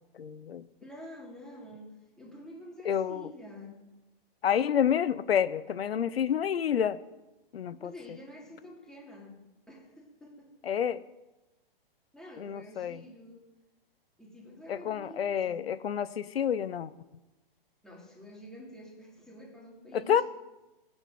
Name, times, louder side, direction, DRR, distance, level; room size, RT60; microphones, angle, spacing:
voice 1, 0.2-0.7 2.8-3.3 4.4-7.0 7.5-7.9 10.6-11.0 12.4-13.0 14.7-16.9 19.9-20.2, left 8 dB, 85° left, 14 dB, 0.9 m, -29 dB
voice 2, 0.8-3.8 7.8-10.5 12.1-13.5 14.2-15.7 17.8-20.2, left 1 dB, ahead, -3 dB, 3.1 m, -48 dB
16.5 x 8.9 x 7.8 m, 1.1 s
hypercardioid pair, 155°, 30 cm